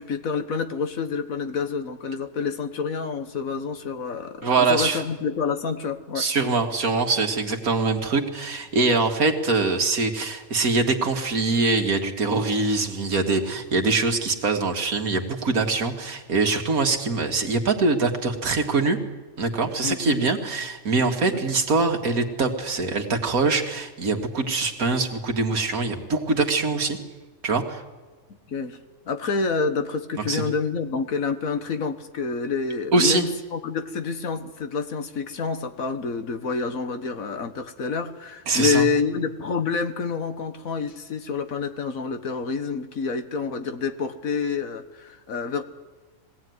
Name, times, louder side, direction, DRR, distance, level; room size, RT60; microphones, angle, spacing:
voice 1, 0.0-6.3 19.8-20.2 21.2-21.4 28.5-28.8 29.1-45.6, left 5 dB, 75° left, 8 dB, 1.8 m, -28 dB
voice 2, 4.4-5.0 6.2-19.0 19.4-27.0 27.4-27.8 30.3-30.4 32.9-33.3 38.5-38.9, right 3 dB, 90° right, 4 dB, 2.3 m, -23 dB
22.0 x 17.0 x 9.4 m, 1.3 s
omnidirectional pair, 1.5 m